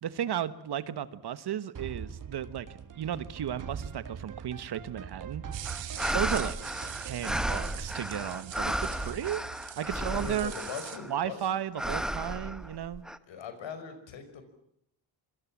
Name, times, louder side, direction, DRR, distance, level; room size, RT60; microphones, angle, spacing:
voice 1, 0.0-2.7 2.9-5.4 6.1-6.6 7.0-9.4 9.8-10.5 11.1-13.0, right 10 dB, 60° right, 14 dB, 1.5 m, -34 dB
sound 1, 1.7-10.6, right 7 dB, 45° right, 1.7 m, -43 dB
sound 2, 5.5-11.0, right 11 dB, 75° right, 2.4 m, -44 dB
sound 3, 5.6-11.2 11.8-13.2, equal, ahead, 1.1 m, -34 dB
voice 2, 9.9-11.6 13.3-14.4, left 6 dB, 75° left, 9 dB, 5.7 m, -41 dB
26.5 x 25.5 x 7.5 m, 0.74 s
cardioid pair, 125°, 45 cm